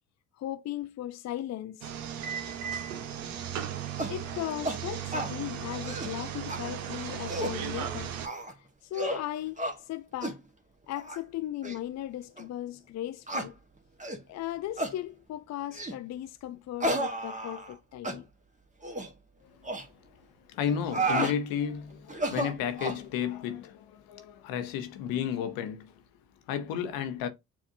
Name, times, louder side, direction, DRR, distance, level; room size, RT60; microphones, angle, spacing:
voice 1, 0.4-1.9 4.1-8.3 8.6-10.4 10.9-13.6 14.3-18.3, left 13 dB, 50° left, 0.5 m, -37 dB
sound 1, 1.8-8.3, right 9 dB, 80° right, 0.8 m, -36 dB
sound 2, 4.0-4.2 4.6-4.8 5.1-5.3 5.7-6.1 6.5-6.6 7.1-7.6 8.2-8.5 8.9-9.2 9.6-9.8 10.2-10.4 11.0-11.2 11.6-11.8 12.4-12.5 13.3-13.5 14.0-14.2 14.8-15.0 15.7-16.0 16.8-17.8 18.0-18.2 18.8-19.1 19.6-19.8 20.7-21.4 22.1-23.0, right 1 dB, 20° right, 1.3 m, -32 dB
voice 2, 19.4-26.0 26.5-27.3, left 8 dB, 80° left, 0.8 m, -33 dB
7.2 x 2.6 x 2.6 m
hypercardioid pair, 50°, 35 cm